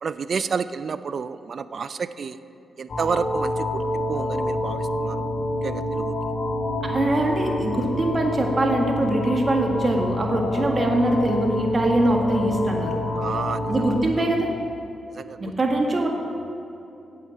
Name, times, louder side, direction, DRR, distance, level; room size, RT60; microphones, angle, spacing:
voice 1, 0.0-2.4 2.8-5.2 5.6-6.2 13.1-14.3 15.1-15.6, right 5 dB, 60° right, 14 dB, 0.4 m, -30 dB
sound 1, 2.9-13.9, left 1 dB, 60° left, 2.4 m, -28 dB
voice 2, 6.8-12.9 13.7-14.5 15.4-16.1, right 1 dB, 40° right, 1 dB, 1.8 m, -22 dB
8.6 x 7.8 x 7.3 m, 2.9 s
supercardioid pair, 55°, 0 cm